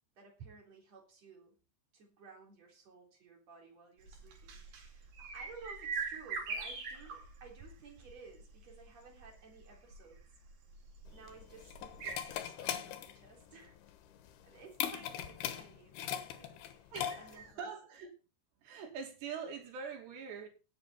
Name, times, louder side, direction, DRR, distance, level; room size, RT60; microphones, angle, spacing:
voice 1, 0.2-1.6 1.9-10.2 11.1-13.8 14.4-17.7, right 4 dB, 40° right, 4.6 m, -55 dB
sound 1, 4.0-12.4, right 4 dB, 60° right, 3.9 m, -43 dB
sound 2, 11.1-17.5, left 10 dB, 75° left, 3.0 m, -40 dB
voice 2, 16.9-18.1 18.6-20.5, right 6 dB, 80° right, 4.8 m, -44 dB
17.0 x 8.4 x 4.4 m
omnidirectional pair, 4.8 m